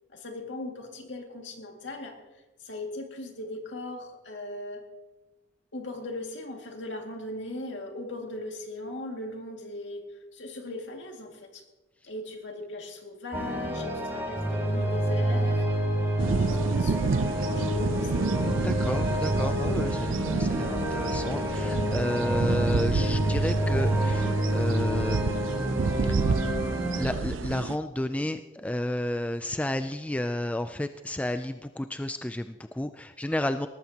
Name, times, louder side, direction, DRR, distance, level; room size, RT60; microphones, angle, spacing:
voice 1, 0.1-2.2 2.6-4.8 5.7-10.0 10.3-11.6 12.0-16.1 16.4-18.2, left 1 dB, 65° left, 2 dB, 2.2 m, -39 dB
sound 1, 13.3-27.1, right 1 dB, 15° right, 2.8 m, -28 dB
sound 2, 16.2-27.8, right 4 dB, 90° right, 0.5 m, -29 dB
voice 2, 18.6-25.4 26.9-33.7, left 1 dB, 5° left, 9 dB, 0.3 m, -31 dB
19.0 x 14.0 x 2.9 m, 1.1 s
head